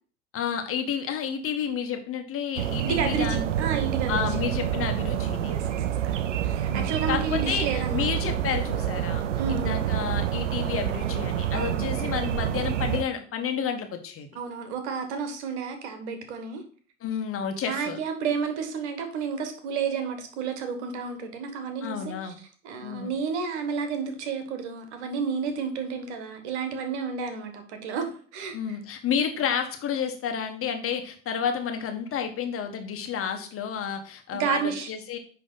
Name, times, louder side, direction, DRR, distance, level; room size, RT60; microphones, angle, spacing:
voice 1, 0.3-3.5 4.1-5.5 6.7-9.2 9.5-14.3 17.0-18.0 21.8-22.4 22.8-23.1 28.5-35.2, left 7 dB, 40° left, 5 dB, 1.4 m, -30 dB
sound 1, 2.6-13.0, right 10 dB, 80° right, 0.6 m, -28 dB
voice 2, 2.8-4.3 5.5-8.1 9.4-9.8 11.5-11.9 14.3-16.6 17.6-22.3 22.6-28.6 34.3-34.9, right 6 dB, 65° right, 8 dB, 1.5 m, -31 dB
10.0 x 3.4 x 4.0 m, 0.44 s
figure-of-eight pair, 70°, 36 cm